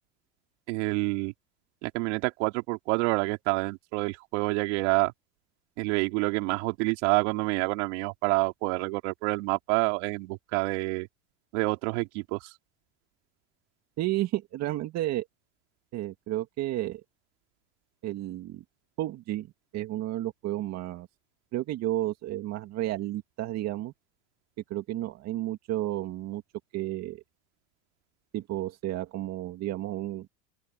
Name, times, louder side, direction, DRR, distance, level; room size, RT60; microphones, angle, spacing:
voice 1, 0.7-1.3 1.8-5.1 5.8-11.1 11.5-12.4, right 26 dB, 70° right, 3.4 m, -28 dB
voice 2, 14.0-15.3 15.9-17.0 18.0-18.6 19.0-19.5 19.7-21.1 21.5-23.9 24.7-26.4 26.7-27.2 28.3-30.3, right 15 dB, 45° right, 2.1 m, -32 dB
open air
supercardioid pair, 120°, 36 cm